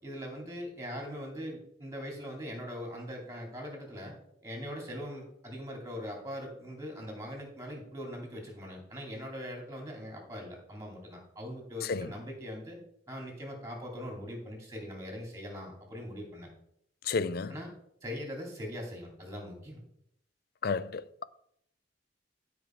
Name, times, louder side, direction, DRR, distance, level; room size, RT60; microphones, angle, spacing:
voice 1, 0.0-4.2 4.4-12.8 13.1-16.5 17.5-17.7 18.0-19.8, equal, 20° right, 2.7 m, -41 dB
voice 2, 17.1-17.5 20.6-21.2, left 5 dB, 60° left, 0.4 m, -32 dB
12.0 x 5.2 x 4.5 m
head